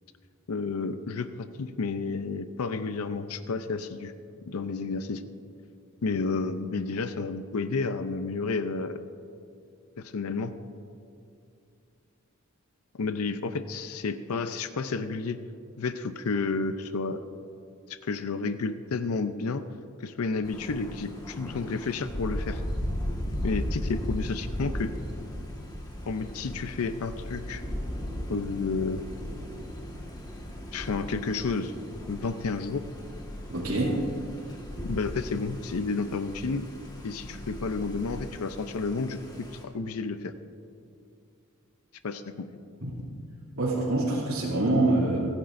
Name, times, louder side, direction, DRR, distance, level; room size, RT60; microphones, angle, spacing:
voice 1, 0.5-4.1 4.5-5.2 6.0-9.0 10.0-10.5 12.9-15.4 15.8-17.2 17.9-19.6 20.0-22.6 23.4-24.9 26.0-27.6 28.3-29.0 30.7-31.7 32.1-32.8 34.8-36.7 37.0-39.2 39.6-40.3 42.0-42.5, left 4 dB, 90° left, 10 dB, 0.6 m, -31 dB
Thunder, 20.4-39.6, equal, 20° left, 1.5 m, -37 dB
voice 2, 33.5-34.0 42.8-42.9 43.5-45.2, right 2 dB, 80° right, -9 dB, 2.8 m, -25 dB
29.5 x 9.9 x 2.6 m, 2.5 s
head